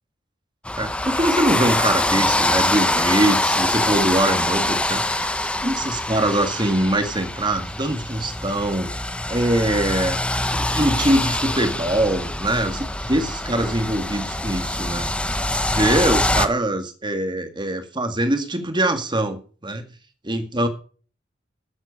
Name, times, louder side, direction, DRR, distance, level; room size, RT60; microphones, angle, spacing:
sound 1, 0.7-16.5, left 1 dB, 5° left, 1.0 m, -24 dB
voice 1, 0.8-5.3 5.6-8.9 9.3-10.2 10.5-15.1 15.7-19.9 20.2-20.7, right 1 dB, 25° right, 8 dB, 1.9 m, -23 dB
12.0 x 8.0 x 6.5 m, 0.39 s
head